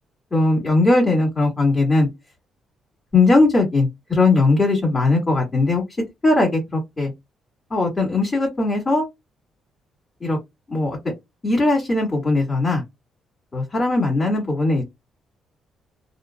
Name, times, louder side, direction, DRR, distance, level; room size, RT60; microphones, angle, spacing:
voice 1, 0.3-2.1 3.1-5.8 6.2-7.1 7.7-9.1 10.2-10.4 10.7-11.0 11.4-12.8 13.5-14.8, left 2 dB, 25° left, 0 dB, 1.7 m, -19 dB
3.7 x 2.1 x 2.3 m, 0.18 s
cardioid pair, 90°, 0 cm